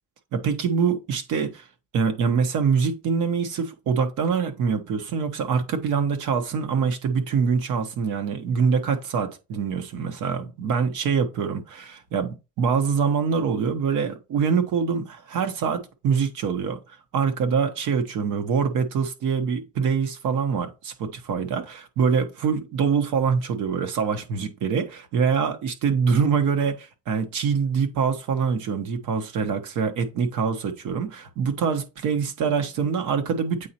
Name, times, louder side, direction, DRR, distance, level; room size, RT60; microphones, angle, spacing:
voice 1, 0.3-1.7 1.9-33.7, right 6 dB, 90° right, 1.3 m, -24 dB
8.3 x 4.2 x 3.0 m
cardioid pair, 90°, 30 cm